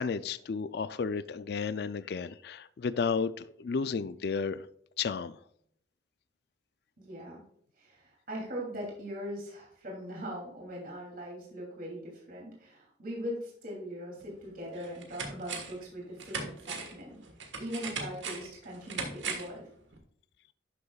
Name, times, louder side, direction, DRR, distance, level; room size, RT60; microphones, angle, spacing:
voice 1, 0.0-4.7 5.0-5.4, left 5 dB, 55° left, 0.4 m, -32 dB
voice 2, 7.0-7.4 7.8-17.2 17.6-19.6, equal, 50° right, 2.9 m, -40 dB
sound 1, 14.2-14.3 14.8-15.8 16.2-19.6 19.9-20.0, right 4 dB, 80° right, 1.4 m, -39 dB
11.5 x 6.8 x 2.4 m
head